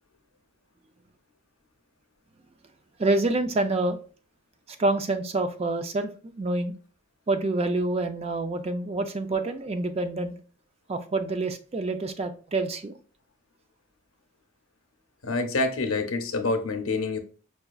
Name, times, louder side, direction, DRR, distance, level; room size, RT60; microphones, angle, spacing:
voice 1, 3.0-4.0 4.8-6.7 7.3-10.3 10.9-12.9, right 2 dB, 30° right, 0.3 m, -27 dB
voice 2, 15.2-17.2, left 3 dB, 80° left, 0.6 m, -27 dB
5.5 x 2.3 x 2.3 m
head